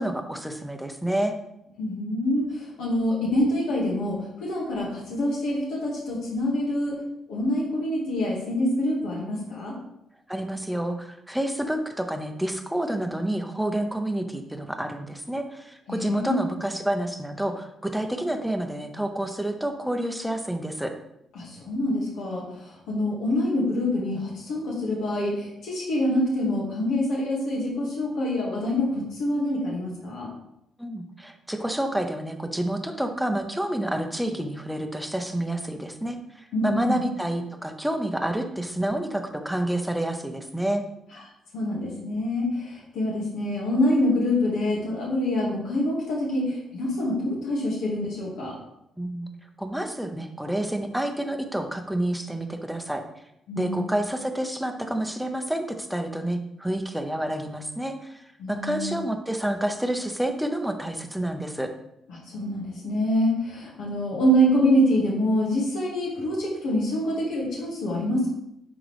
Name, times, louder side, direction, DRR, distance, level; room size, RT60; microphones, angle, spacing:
voice 1, 0.0-1.4 10.3-20.9 30.8-40.8 49.0-49.3 49.6-53.0 53.5-61.7, right 1 dB, ahead, 5 dB, 0.8 m, -29 dB
voice 2, 1.8-7.0 7.3-9.7 15.9-16.4 21.4-30.3 36.5-37.0 41.5-48.6 53.5-53.9 58.4-59.0 62.1-68.3, left 1 dB, 85° left, -4 dB, 2.0 m, -26 dB
10.0 x 3.9 x 3.4 m, 0.81 s
cardioid pair, 100°, 0 cm